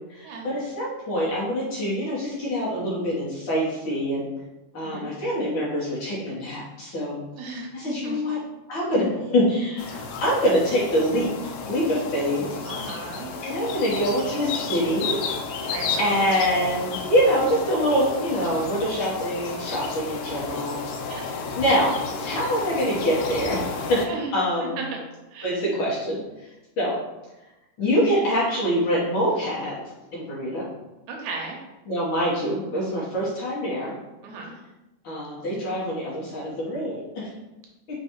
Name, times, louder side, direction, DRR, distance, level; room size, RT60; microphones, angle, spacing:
voice 1, 0.1-4.3 4.7-7.2 7.5-8.4 8.7-12.5 13.4-15.2 15.6-15.7 16.0-23.6 23.9-24.8 25.4-26.2 26.8-27.0 27.8-29.8 30.1-30.7 31.9-34.0 35.0-37.3, equal, 65° left, -6 dB, 1.3 m, -25 dB
voice 2, 7.4-8.2 12.6-13.3 15.7-16.2 21.1-21.3 24.1-24.3 24.6-25.0 25.3-25.6 31.1-31.6 34.2-34.5, right 4 dB, 75° right, 1 dB, 2.0 m, -35 dB
sound 1, 9.8-24.1, left 5 dB, 90° left, 2.1 m, -32 dB
4.5 x 3.7 x 2.9 m, 1.0 s
omnidirectional pair, 3.6 m